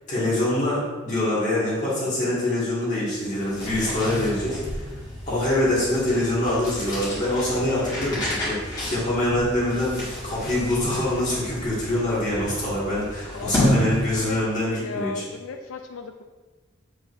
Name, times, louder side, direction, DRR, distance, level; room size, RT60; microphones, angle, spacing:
voice 1, 0.1-4.9 5.3-15.2, left 1 dB, 35° left, -8 dB, 1.9 m, -25 dB
sound 1, 3.3-14.5, equal, 20° left, 1.9 m, -31 dB
voice 2, 13.3-13.8 14.2-16.2, left 5 dB, 85° left, 5 dB, 0.4 m, -36 dB
7.5 x 5.1 x 2.6 m, 1.3 s
head